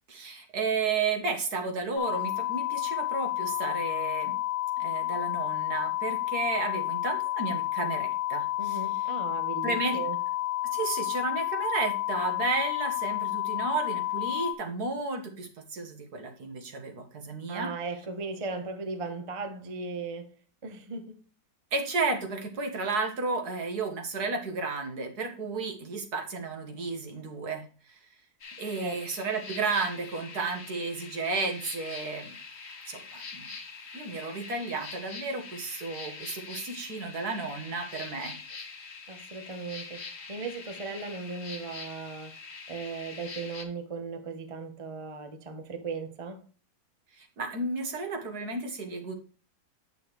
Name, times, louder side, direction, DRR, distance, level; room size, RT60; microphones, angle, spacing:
voice 1, 0.1-4.4 4.8-8.8 9.6-10.0 10.7-17.7 21.7-28.0 28.6-32.4 32.9-33.5 33.9-38.4 47.1-49.1, right 4 dB, 70° right, 1.9 m, -33 dB
sound 1, 2.0-14.5, left 16 dB, 90° left, 1.4 m, -30 dB
voice 2, 8.6-10.2 17.5-20.4 20.6-21.2 28.8-29.0 39.1-40.0 40.3-42.4 42.7-46.4, right 4 dB, 25° right, 0.8 m, -37 dB
sound 2, 28.4-43.6, left 4 dB, 45° left, 1.3 m, -44 dB
8.5 x 6.5 x 3.1 m
omnidirectional pair, 1.8 m